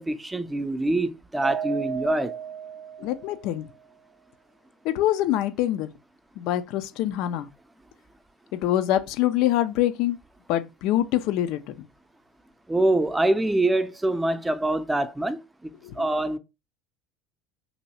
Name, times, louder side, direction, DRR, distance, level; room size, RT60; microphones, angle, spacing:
voice 1, 0.0-2.4 12.7-15.7 16.0-16.4, right 1 dB, 10° right, 0.6 m, -25 dB
Mallet percussion, 1.4-3.7, right 9 dB, 45° right, 0.3 m, -34 dB
voice 2, 3.0-3.7 4.8-5.9 6.4-7.5 8.5-10.2 10.5-11.9 15.8-16.1, left 13 dB, 60° left, 0.5 m, -25 dB
3.0 x 2.7 x 4.2 m
hypercardioid pair, 75°, 0 cm